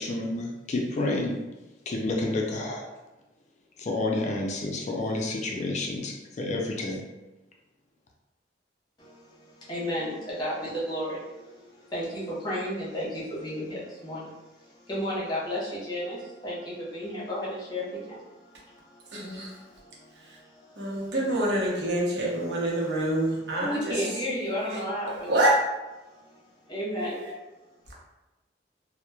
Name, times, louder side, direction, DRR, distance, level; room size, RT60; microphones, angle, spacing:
voice 1, 0.0-1.4 1.9-2.9 3.8-7.0, left 2 dB, 40° left, 0 dB, 0.3 m, -29 dB
voice 2, 9.0-21.4 21.7-21.8 22.5-25.3 26.0-26.4 26.7-27.2, equal, 25° left, -7 dB, 0.8 m, -34 dB
voice 3, 19.1-19.5 20.8-23.9 24.7-24.8 25.3-25.6 27.2-27.3, right 1 dB, 75° right, -4 dB, 0.7 m, -26 dB
2.9 x 2.0 x 2.2 m, 1.1 s
head